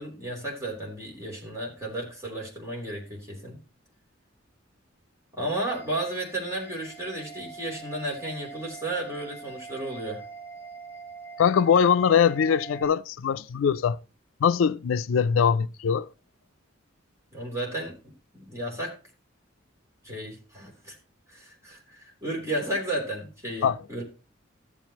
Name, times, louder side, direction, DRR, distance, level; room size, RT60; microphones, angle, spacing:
voice 1, 0.0-3.6 5.3-10.2 17.3-19.0 20.0-21.0 21.3-24.0, right 1 dB, 15° right, 3.4 m, -33 dB
sound 1, 5.7-12.8, right 4 dB, 15° left, 3.9 m, -44 dB
voice 2, 11.4-14.0 14.4-16.1 23.6-23.8, left 7 dB, 80° left, 0.4 m, -22 dB
14.5 x 7.5 x 3.0 m
head